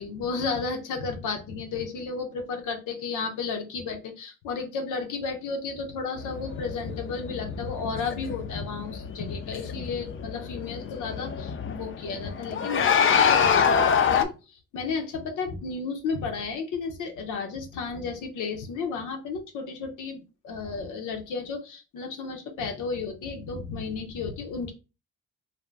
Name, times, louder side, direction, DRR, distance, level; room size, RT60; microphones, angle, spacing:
voice 1, 0.0-24.7, left 4 dB, 80° left, 5 dB, 0.8 m, -33 dB
sound 1, 6.2-14.2, left 7 dB, 45° left, 0.5 m, -26 dB
2.7 x 2.2 x 3.3 m, 0.30 s
cardioid pair, 90°, 30 cm